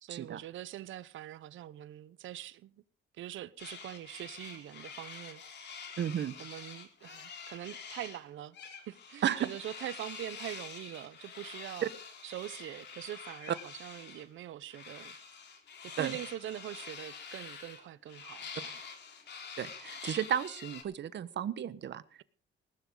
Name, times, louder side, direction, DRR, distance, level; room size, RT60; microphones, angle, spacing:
voice 1, 0.0-2.7 3.1-5.4 6.4-8.6 8.9-11.9 12.2-15.1 15.8-18.8, right 13 dB, 80° right, 0.9 m, -43 dB
sound 1, 3.6-8.2 8.5-14.3 14.7-20.8, left 6 dB, 60° left, 3.7 m, -47 dB
voice 2, 6.0-6.4 9.2-9.5 11.8-11.9 16.0-16.2 19.6-22.0, right 10 dB, 65° right, 1.3 m, -33 dB
19.5 x 12.5 x 3.9 m
cardioid pair, 90°, 20 cm